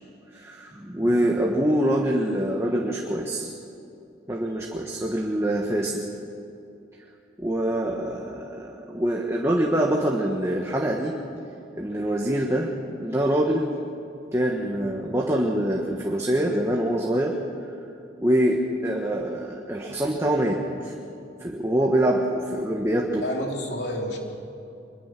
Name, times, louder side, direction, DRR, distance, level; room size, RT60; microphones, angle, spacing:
voice 1, 0.3-3.5 4.3-6.0 7.4-11.1 11.8-12.7 13.0-13.7 14.3-17.3 18.2-20.9 21.4-23.2, right 1 dB, 15° right, -1 dB, 1.6 m, -24 dB
voice 2, 23.2-24.2, left 1 dB, 65° left, 0 dB, 3.5 m, -31 dB
25.0 x 22.5 x 6.1 m, 2.7 s
head